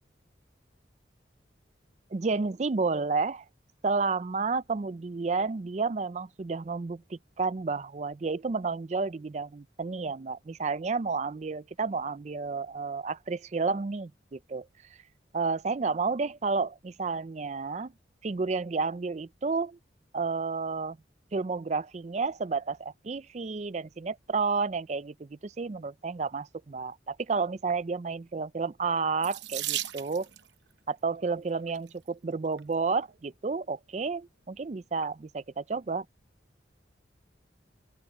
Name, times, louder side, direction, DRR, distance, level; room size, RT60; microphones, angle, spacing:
voice 1, 2.1-3.4 3.8-14.7 15.3-17.9 18.2-19.8 20.1-21.0 21.3-30.3 30.9-36.1, right 4 dB, 40° right, 0.4 m, -31 dB
Water tap faucet / Sink (filling or washing), 29.2-30.5 31.5-31.9 32.6-32.7 33.0-33.2, right 13 dB, 70° right, 0.9 m, -35 dB
open air
head